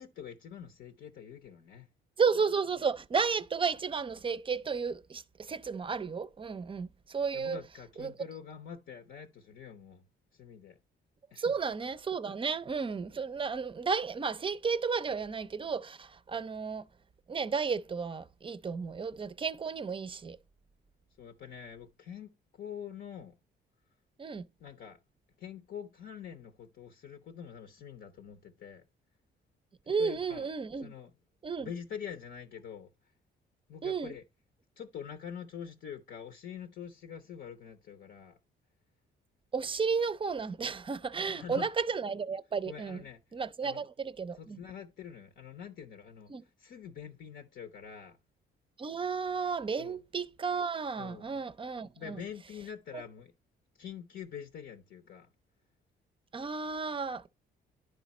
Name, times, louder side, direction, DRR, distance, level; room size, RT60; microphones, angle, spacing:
voice 1, 0.0-1.9 7.3-10.0 10.3-10.8 11.3-11.5 21.2-23.3 24.6-25.0 25.4-28.8 29.8-30.5 30.8-31.1 31.6-32.9 33.7-34.2 34.8-38.4 41.2-41.7 42.7-43.2 43.6-43.9 44.3-46.3 46.6-48.2 49.8-50.0 51.0-51.4 52.0-53.3 53.8-55.3, left 8 dB, 65° left, 0.9 m, -45 dB
voice 2, 2.2-7.6 8.0-8.1 11.4-16.8 17.3-20.4 24.2-24.4 29.9-30.9 31.4-31.7 33.8-34.1 39.5-43.0 43.3-44.6 46.3-46.4 48.8-52.2 52.9-53.0 56.3-57.3, right 5 dB, 25° right, 0.5 m, -33 dB
10.5 x 4.0 x 4.1 m
cardioid pair, 90°, 20 cm